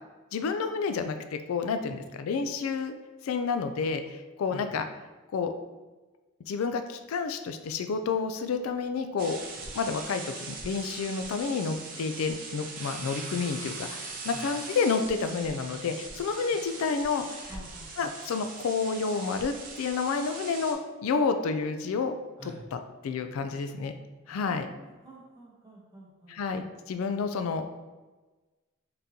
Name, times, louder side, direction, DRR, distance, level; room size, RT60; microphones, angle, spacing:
voice 1, 0.3-2.9 3.2-4.8 5.3-5.5 6.5-9.4 9.7-17.5 18.0-22.1 22.7-23.9 24.3-24.7 26.3-27.7, left 5 dB, 90° left, 8 dB, 0.3 m, -30 dB
sound 1, 9.2-20.7, right 4 dB, 40° right, 0.7 m, -41 dB
voice 2, 16.5-17.1 17.5-18.1 22.4-22.6 24.3-26.4, right 2 dB, 20° right, -5 dB, 1.0 m, -49 dB
3.8 x 3.6 x 2.8 m, 1.2 s
head